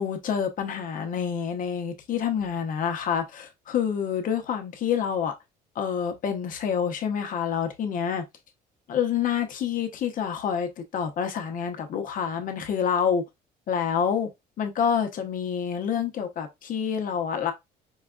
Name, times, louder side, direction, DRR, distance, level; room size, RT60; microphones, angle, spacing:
voice 1, 0.0-5.3 5.8-8.2 8.9-13.2 13.7-14.3 14.6-17.5, left 7 dB, 55° left, 0.8 m, -27 dB
4.7 x 2.3 x 2.3 m
cardioid pair, 110°, 17 cm